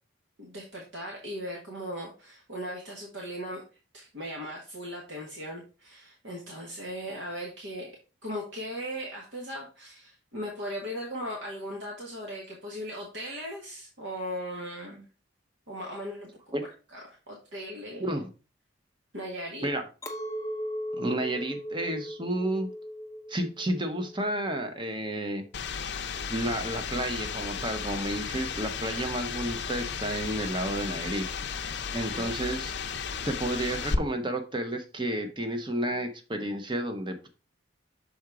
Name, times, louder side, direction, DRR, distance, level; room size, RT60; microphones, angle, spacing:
voice 1, 0.4-3.6 3.9-7.9 8.2-15.1 15.7-16.3 16.9-18.2 19.1-19.7 31.9-32.4, equal, 65° right, -1 dB, 1.4 m, -38 dB
Chink clink, 20.0-25.4, equal, 15° left, 0.6 m, -38 dB
voice 2, 20.9-22.7 23.3-25.4 26.3-31.2 31.9-32.7 33.2-37.3, right 1 dB, 25° right, 5 dB, 0.8 m, -31 dB
sound 1, 25.5-34.0, left 5 dB, 55° left, 0.6 m, -34 dB
6.2 x 3.8 x 4.7 m, 0.33 s
head